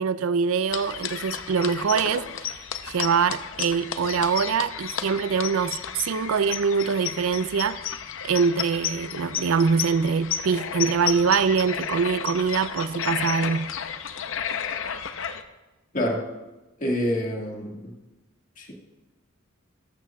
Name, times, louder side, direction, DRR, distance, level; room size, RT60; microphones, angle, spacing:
voice 1, 0.0-2.2 2.9-7.8 8.2-13.7, right 5 dB, 75° right, 15 dB, 0.4 m, -24 dB
sound 1, 0.7-15.4, left 8 dB, 65° left, 0.6 m, -32 dB
voice 2, 15.9-16.2 16.8-17.9 18.6-18.7, left 1 dB, 40° left, 0 dB, 1.8 m, -27 dB
13.5 x 12.0 x 2.3 m, 1.1 s
head